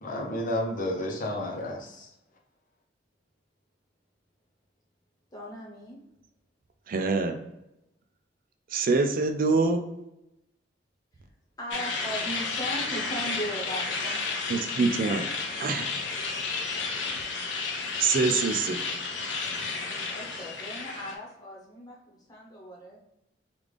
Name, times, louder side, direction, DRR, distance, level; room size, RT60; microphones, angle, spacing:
voice 1, 0.0-2.1, left 1 dB, 50° left, 0 dB, 0.7 m, -31 dB
voice 2, 5.3-6.0 11.6-14.7 19.6-19.7 20.1-23.0, equal, 20° left, -3 dB, 1.1 m, -38 dB
voice 3, 6.9-7.4 8.7-9.8 14.5-15.3 15.6-16.0 17.4-17.7 18.0-18.8, right 4 dB, 50° right, 6 dB, 0.4 m, -25 dB
sound 1, 11.7-21.2, left 4 dB, 85° left, 0.7 m, -32 dB
3.5 x 2.4 x 3.2 m, 0.87 s
head